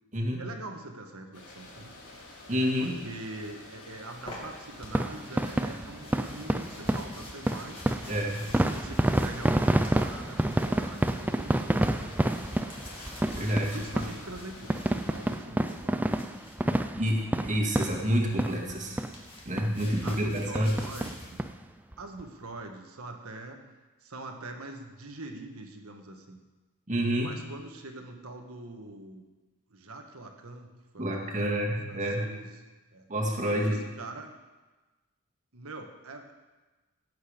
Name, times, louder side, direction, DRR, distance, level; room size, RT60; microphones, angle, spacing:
voice 1, 0.4-2.0 2.8-7.8 8.4-12.5 13.6-16.3 19.8-21.4 22.0-23.6 24.0-26.4 27.2-29.2 29.7-30.7 30.9-32.5 32.9-33.1 33.6-34.3 35.5-36.3, right 2 dB, 70° right, 4 dB, 1.5 m, -43 dB
sound 1, 1.3-15.4, left 2 dB, 75° left, 3.2 m, -49 dB
voice 2, 2.5-2.9 8.1-8.5 13.3-13.8 17.0-19.0 19.5-20.7 26.9-27.3 31.0-32.2 33.1-33.8, equal, 35° right, -1 dB, 1.9 m, -28 dB
sound 2, 4.1-16.8 17.8-21.4, left 1 dB, 25° left, 2.5 m, -49 dB
sound 3, 4.8-18.7 19.0-19.1 19.6-19.7 20.1-20.2 20.5-21.5 21.9-22.0 22.2-22.3, right 1 dB, 5° right, 0.4 m, -29 dB
17.0 x 8.1 x 5.1 m, 1.2 s
head